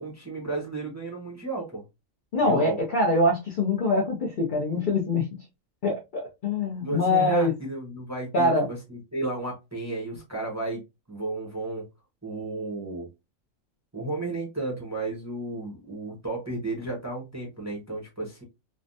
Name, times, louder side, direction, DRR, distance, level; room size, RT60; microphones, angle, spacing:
voice 1, 0.0-1.8 2.4-2.8 6.8-10.8 11.1-11.8 12.2-13.1 13.9-18.4, right 2 dB, 15° right, 0.7 m, -33 dB
voice 2, 2.3-5.3 5.8-7.5 8.3-8.7, left 2 dB, 50° left, 0.6 m, -24 dB
3.3 x 2.1 x 2.5 m
omnidirectional pair, 1.4 m